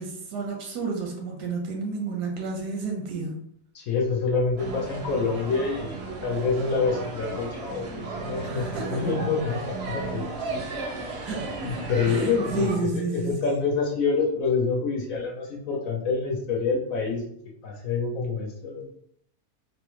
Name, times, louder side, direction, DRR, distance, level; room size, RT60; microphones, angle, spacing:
voice 1, 0.0-3.4 8.4-9.0 11.2-13.4, right 4 dB, 85° right, 1 dB, 1.2 m, -31 dB
voice 2, 3.7-7.9 8.2-10.3 11.6-17.2 17.6-18.9, left 4 dB, 70° left, 0 dB, 0.9 m, -27 dB
sound 1, 4.6-12.8, right 3 dB, 65° right, 0.6 m, -34 dB
3.2 x 2.1 x 3.0 m, 0.70 s
omnidirectional pair, 1.7 m